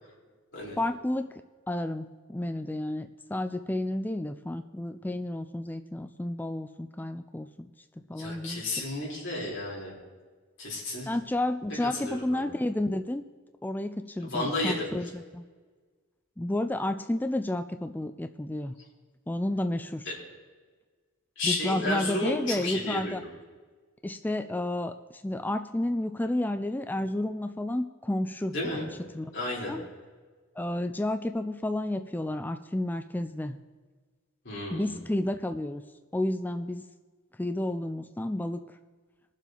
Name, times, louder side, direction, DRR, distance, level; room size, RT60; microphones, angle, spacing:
voice 1, 0.8-1.3 1.7-7.7 8.1-8.7 11.1-13.2 13.6-15.5 16.4-18.7 19.3-20.1 21.4-23.2 24.0-28.9 29.1-29.3 29.7-29.9 30.6-33.6 34.7-35.8 36.1-36.9 37.4-38.7, left 1 dB, 10° left, 8 dB, 0.3 m, -31 dB
voice 2, 8.2-9.9 10.6-11.1 11.8-12.5 14.2-14.9 21.4-23.3 28.5-28.8 29.3-29.7 34.4-35.0, left 2 dB, 55° left, -4 dB, 4.3 m, -32 dB
21.0 x 7.3 x 4.0 m, 1.4 s
head